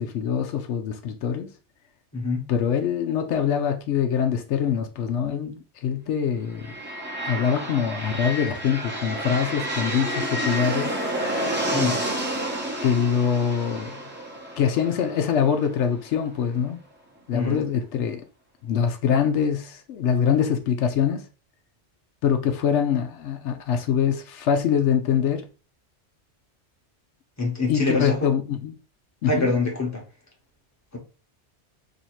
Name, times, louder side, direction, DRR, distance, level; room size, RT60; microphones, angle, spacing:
voice 1, 0.0-1.5 2.5-6.7 7.2-11.0 12.8-14.0 14.6-16.8 17.3-18.2 18.6-21.2 22.2-25.4 27.7-28.8 29.2-29.5, left 7 dB, 80° left, 0.9 m, -24 dB
sound 1, 6.5-16.3, right 1 dB, 10° right, 0.9 m, -30 dB
voice 2, 17.3-17.6 27.4-28.3 29.3-30.0, left 3 dB, 15° left, 1.1 m, -24 dB
2.8 x 2.8 x 4.4 m
omnidirectional pair, 1.2 m